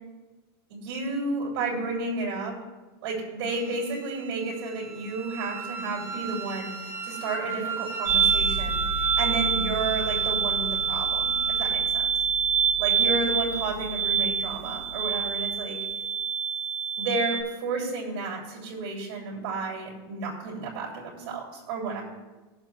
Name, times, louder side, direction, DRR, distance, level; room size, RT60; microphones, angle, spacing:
voice 1, 0.7-2.6 3.0-6.8 7.0-12.1 12.8-15.8 17.0-22.0, right 3 dB, 75° right, -4 dB, 2.9 m, -32 dB
Wind instrument woodwind instrument, 3.5-11.7, right 5 dB, 20° right, 0.6 m, -36 dB
sound 1, 8.1-17.4, right 7 dB, 50° right, 2.2 m, -26 dB
20.0 x 7.3 x 2.4 m, 1.2 s
supercardioid pair, 170°, 13 cm